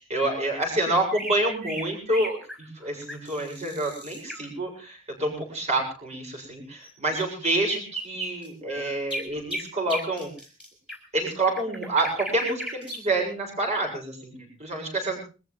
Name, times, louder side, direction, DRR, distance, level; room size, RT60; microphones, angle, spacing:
voice 1, 0.1-10.3 11.1-15.2, right 2 dB, 35° right, 1 dB, 7.3 m, -28 dB
sound 1, 1.1-4.4 6.8-6.9 7.1-13.1, right 1 dB, 5° right, 4.5 m, -36 dB
23.0 x 14.0 x 3.6 m, 0.34 s
head